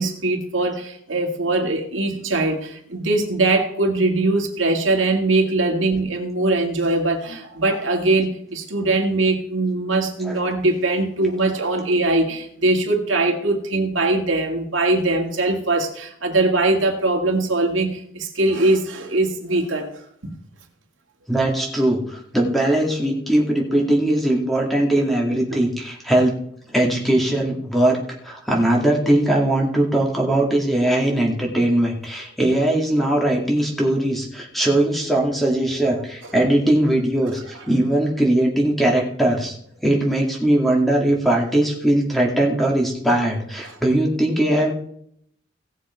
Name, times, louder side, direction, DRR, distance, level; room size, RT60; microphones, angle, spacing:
voice 1, 0.0-19.9 20.2-20.4 35.9-36.0, right 2 dB, 80° right, 2 dB, 2.1 m, -21 dB
voice 2, 21.3-26.3 26.7-28.0 28.2-39.6 39.8-44.7, right 1 dB, ahead, -1 dB, 2.3 m, -20 dB
17.5 x 7.1 x 4.5 m, 0.67 s
head